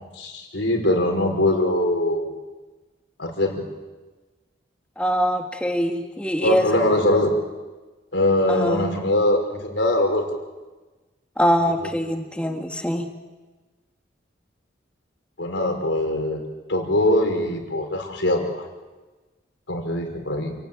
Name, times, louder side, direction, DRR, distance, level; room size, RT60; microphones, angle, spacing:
voice 1, 0.2-2.3 3.2-3.6 6.4-7.4 8.1-10.2 15.4-16.4 16.7-18.6 19.7-20.6, left 1 dB, 90° left, 4 dB, 4.7 m, -22 dB
voice 2, 5.0-6.8 8.5-9.1 11.4-13.1, equal, 5° left, 4 dB, 2.1 m, -23 dB
28.0 x 17.5 x 8.9 m, 1.2 s
head